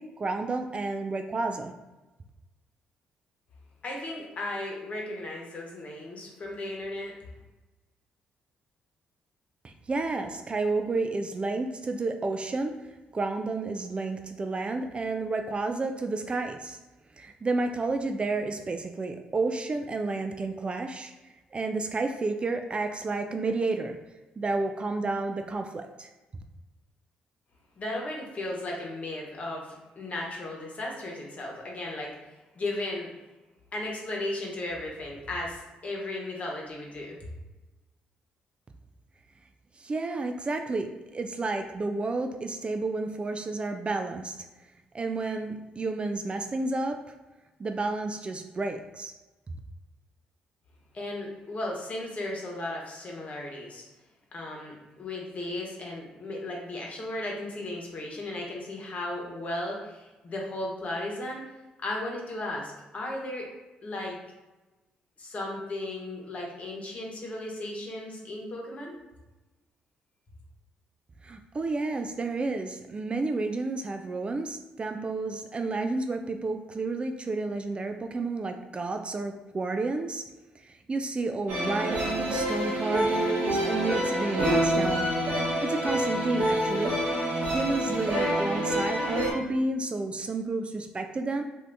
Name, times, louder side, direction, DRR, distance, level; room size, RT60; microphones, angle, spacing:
voice 1, 0.0-1.7 9.6-12.7 13.1-16.8 17.2-21.1 21.5-24.0 24.4-26.1 39.8-44.4 44.9-47.0 47.6-49.1 71.2-80.2 80.6-91.4, right 3 dB, 35° right, 6 dB, 0.3 m, -31 dB
voice 2, 3.8-7.1 27.8-32.2 32.5-33.1 33.7-37.2 50.9-53.8 54.3-61.4 61.8-63.5 63.8-64.2 65.2-68.9, left 1 dB, 45° left, -1 dB, 1.1 m, -35 dB
sound 1, 81.5-89.3, right 1 dB, 65° right, 1.2 m, -27 dB
2.6 x 2.5 x 3.4 m, 1.1 s
supercardioid pair, 55°, 3 cm